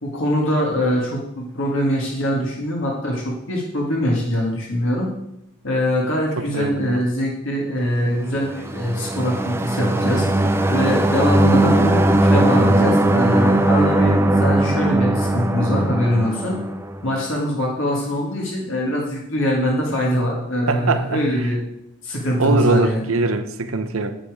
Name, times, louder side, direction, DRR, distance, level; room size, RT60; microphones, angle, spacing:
voice 1, 0.0-5.1 5.6-10.2 10.7-16.6 17.0-21.6 22.0-23.0, equal, 65° left, 2.0 m, -23 dB
voice 2, 6.4-7.0 20.7-21.5 22.4-24.2, right 3 dB, 80° right, 0.8 m, -22 dB
sound 1, 8.5-17.2, right 1 dB, 10° right, 0.4 m, -19 dB
8.9 x 8.9 x 4.9 m
head